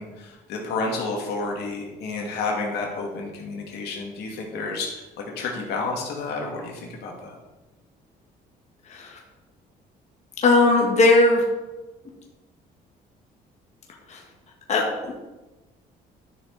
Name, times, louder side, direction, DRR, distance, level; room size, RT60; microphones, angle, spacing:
voice 1, 0.0-5.0 5.4-7.3, left 3 dB, 80° left, -1 dB, 2.3 m, -30 dB
voice 2, 8.9-9.2 10.4-11.4 14.1-14.2 14.7-15.1, left 2 dB, 40° left, -1 dB, 1.9 m, -18 dB
12.0 x 6.4 x 4.2 m, 1.1 s
cardioid pair, 110°, 17 cm